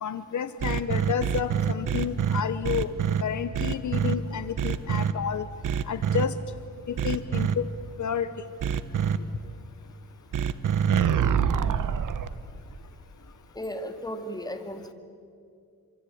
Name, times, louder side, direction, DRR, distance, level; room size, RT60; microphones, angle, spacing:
voice 1, 0.0-2.9 3.2-5.5 5.9-6.3 6.9-7.7 8.0-8.3, left 8 dB, 60° left, 13 dB, 1.0 m, -30 dB
sound 1, 0.6-3.2 3.5-4.1 4.6-5.1 5.6-6.3 7.0-7.5 8.6-9.2 10.3-12.3, right 8 dB, 65° right, 1.2 m, -25 dB
voice 2, 13.5-14.9, equal, 10° left, 7 dB, 2.4 m, -35 dB
26.5 x 25.0 x 8.7 m, 2.4 s
cardioid pair, 110°, 33 cm